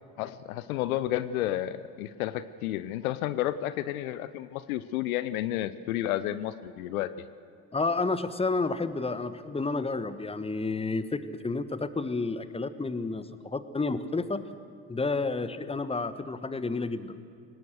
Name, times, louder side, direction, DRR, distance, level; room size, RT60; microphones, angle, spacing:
voice 1, 0.2-7.3, left 13 dB, 70° left, 14 dB, 0.8 m, -31 dB
voice 2, 7.7-14.4 14.9-17.2, left 3 dB, 15° left, 13 dB, 1.3 m, -30 dB
24.5 x 19.0 x 6.5 m, 2.4 s
figure-of-eight pair, 50°, 44 cm